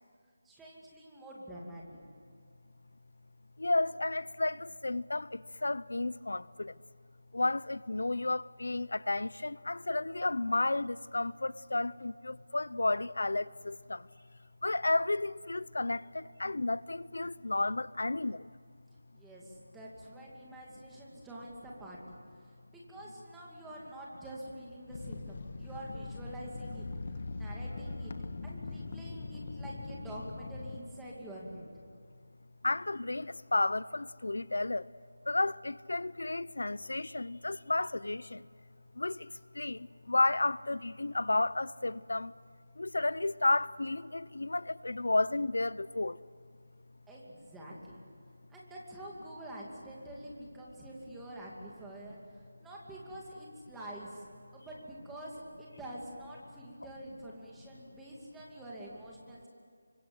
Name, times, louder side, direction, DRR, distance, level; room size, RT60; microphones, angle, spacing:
voice 1, 0.4-1.8 19.1-22.2 22.7-26.8 27.4-28.1 28.4-31.8 47.1-48.0 48.5-52.2 52.6-54.3 54.5-59.5, right 1 dB, 5° right, 2.6 m, -46 dB
voice 2, 3.6-6.8 7.3-14.1 14.6-18.5 32.6-34.9 35.3-38.5 38.9-39.3 39.5-42.3 42.8-46.2, left 2 dB, 90° left, 0.6 m, -32 dB
sound 1, 24.9-30.8, left 3 dB, 35° left, 1.5 m, -41 dB
29.0 x 25.0 x 7.9 m
figure-of-eight pair, 175°, 0 cm